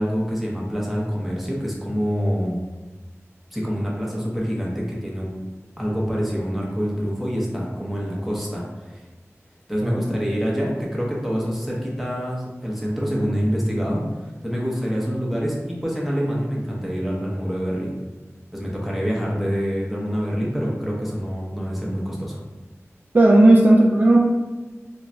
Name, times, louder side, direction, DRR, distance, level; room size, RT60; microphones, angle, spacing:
voice 1, 0.0-2.6 3.5-5.3 5.8-9.0 9.7-14.0 14.4-17.9 18.5-22.4, equal, ahead, -4 dB, 0.9 m, -26 dB
voice 2, 23.1-24.2, right 2 dB, 35° right, -2 dB, 0.3 m, -14 dB
3.7 x 2.7 x 2.2 m, 1.2 s
wide cardioid pair, 55°, 5 cm